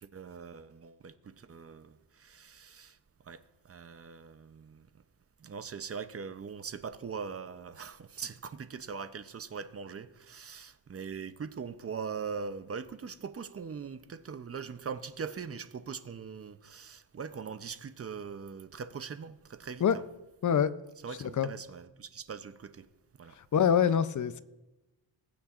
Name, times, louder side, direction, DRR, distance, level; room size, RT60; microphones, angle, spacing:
voice 1, 0.0-3.0 3.2-4.9 5.4-20.0 21.0-22.9 23.2-23.4, right 6 dB, 30° right, 0.6 m, -41 dB
voice 2, 23.5-24.4, left 8 dB, 45° left, 0.6 m, -25 dB
21.0 x 8.6 x 2.5 m
cardioid pair, 100°, 45 cm